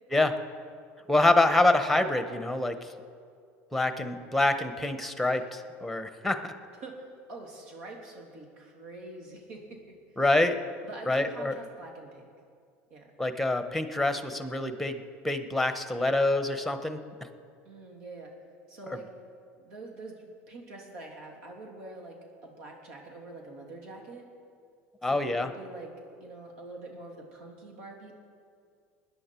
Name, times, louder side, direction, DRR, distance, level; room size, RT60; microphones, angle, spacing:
voice 1, 1.1-2.9 3.7-6.6 10.2-10.6 11.1-11.5 13.2-15.0 15.2-17.0 25.0-25.5, left 2 dB, ahead, 9 dB, 1.1 m, -26 dB
voice 2, 7.3-9.9 10.8-12.3 12.9-13.1 17.6-18.3 18.7-19.1 19.6-22.2 22.4-24.2 25.1-25.9 26.2-28.1, right 2 dB, 80° right, 0 dB, 2.9 m, -45 dB
20.5 x 10.5 x 4.6 m, 2.2 s
supercardioid pair, 95°, 7 cm